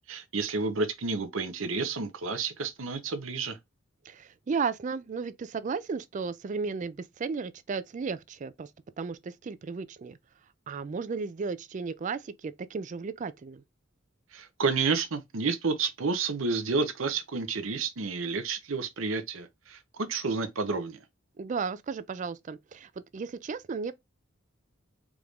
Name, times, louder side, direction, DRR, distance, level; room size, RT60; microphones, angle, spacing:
voice 1, 0.0-3.6 14.3-21.0, right 4 dB, 85° right, 0.8 m, -30 dB
voice 2, 4.1-8.7 9.0-10.2 10.7-13.6 21.4-23.9, right 5 dB, 40° right, 0.3 m, -34 dB
4.7 x 2.6 x 3.5 m
head